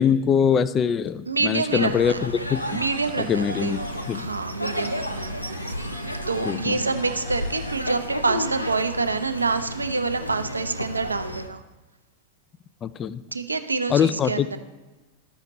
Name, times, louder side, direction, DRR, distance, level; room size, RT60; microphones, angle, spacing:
voice 1, 0.0-2.8 3.2-3.8 4.1-4.3 6.4-6.8 12.8-13.2 13.9-14.6, left 7 dB, 25° left, 15 dB, 0.3 m, -23 dB
voice 2, 1.3-2.2 2.7-5.3 6.3-11.6 13.3-14.6, right 4 dB, 80° right, 9 dB, 0.5 m, -27 dB
sound 1, 1.6-11.5, equal, 90° left, 0.5 m, -32 dB
sound 2, 2.5-4.4 4.6-7.8, left 1 dB, 70° left, 1.7 m, -45 dB
13.5 x 5.7 x 2.9 m, 1.2 s
figure-of-eight pair, 90°, 0 cm